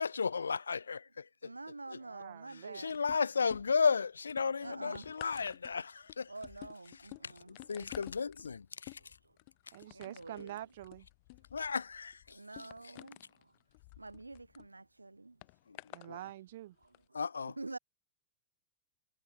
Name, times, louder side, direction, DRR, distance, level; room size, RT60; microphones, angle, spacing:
voice 1, 0.0-1.5 1.9-2.0 2.5-6.3 6.9-9.0 11.5-12.9 15.7-15.8 16.1-16.2 17.1-17.6, left 5 dB, 75° left, 2.0 m, -34 dB
voice 2, 1.4-2.9 4.6-5.1 6.3-7.5 9.9-10.6 12.3-13.2 14.0-15.3 17.6-17.8, right 2 dB, 80° right, 1.5 m, -47 dB
voice 3, 2.0-2.8 7.7-7.9 9.7-11.1 15.9-16.7, right 14 dB, 55° right, 7.5 m, -47 dB
sound 1, 2.9-4.0 4.3-14.7 15.4-16.1 16.8-17.0, left 27 dB, 50° left, 4.7 m, -52 dB
figure-of-eight pair, 90°, 0 cm